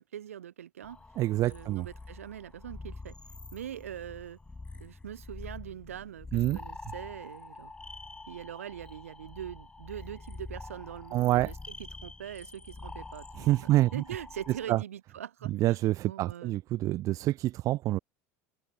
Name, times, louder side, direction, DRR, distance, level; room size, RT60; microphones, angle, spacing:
voice 1, 0.0-1.0 1.4-3.2 3.5-4.4 4.8-7.7 8.3-11.6 12.0-15.8 16.1-16.5, right 10 dB, 85° right, 0.8 m, -42 dB
sound 1, 0.8-14.7, left 3 dB, 15° left, 0.9 m, -46 dB
voice 2, 1.2-1.9 6.3-6.6 11.1-11.5 13.4-14.0 14.7-14.8 15.5-18.0, right 15 dB, 50° right, 0.3 m, -27 dB
hypercardioid pair, 75°, 7 cm